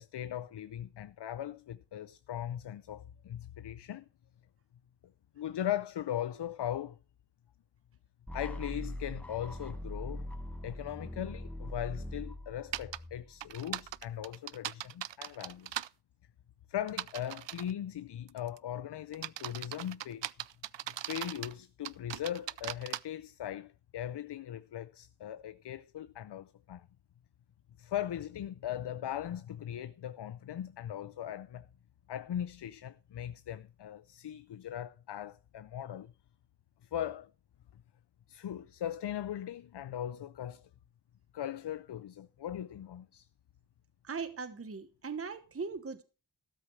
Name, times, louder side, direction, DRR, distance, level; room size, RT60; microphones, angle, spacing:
voice 1, 0.0-4.0 5.4-7.0 8.3-10.3 10.6-15.8 16.7-20.3 21.0-26.8 27.8-31.7 32.1-36.1 36.9-37.3 38.3-40.7 41.3-43.3, left 11 dB, 70° left, 0.6 m, -39 dB
sound 1, 8.3-14.2, left 1 dB, 5° left, 1.2 m, -42 dB
sound 2, 12.7-13.0 13.4-15.9 16.9-17.7 18.3-18.6 19.1-21.5 21.8-23.0, right 13 dB, 80° right, 0.5 m, -39 dB
voice 2, 44.0-46.0, right 5 dB, 30° right, 1.0 m, -39 dB
13.0 x 13.0 x 3.2 m
wide cardioid pair, 85°, 43 cm